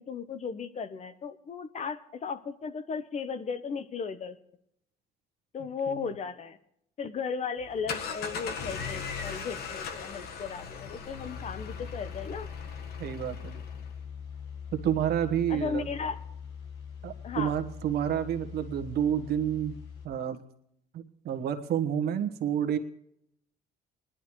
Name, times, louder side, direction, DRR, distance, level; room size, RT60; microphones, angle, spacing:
voice 1, 0.0-4.4 5.5-6.6 7.0-12.5 15.5-16.2 17.2-17.5, left 5 dB, 40° left, 12 dB, 1.0 m, -36 dB
sound 1, 7.6-14.0, left 6 dB, 65° left, 1.5 m, -39 dB
sound 2, 11.2-20.1, left 7 dB, 90° left, 1.6 m, -42 dB
voice 2, 13.0-13.6 14.7-15.9 17.0-19.7 20.0-20.4 21.2-22.8, right 9 dB, 70° right, 8 dB, 1.4 m, -29 dB
20.0 x 11.5 x 3.2 m, 0.73 s
cardioid pair, 110°, 17 cm